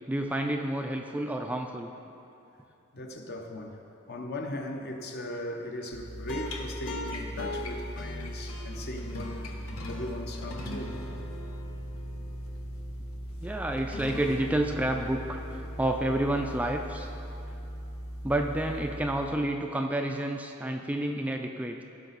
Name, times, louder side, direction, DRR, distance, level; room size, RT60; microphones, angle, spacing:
voice 1, 0.1-1.9 13.4-17.1 18.2-21.8, right 1 dB, 5° right, 3 dB, 0.3 m, -30 dB
voice 2, 2.9-3.8 4.1-9.4 9.9-11.0, left 1 dB, 50° left, 3 dB, 0.9 m, -38 dB
sound 1, 5.9-19.5, equal, 80° left, 1.0 m, -38 dB
15.5 x 5.8 x 4.0 m, 2.8 s
head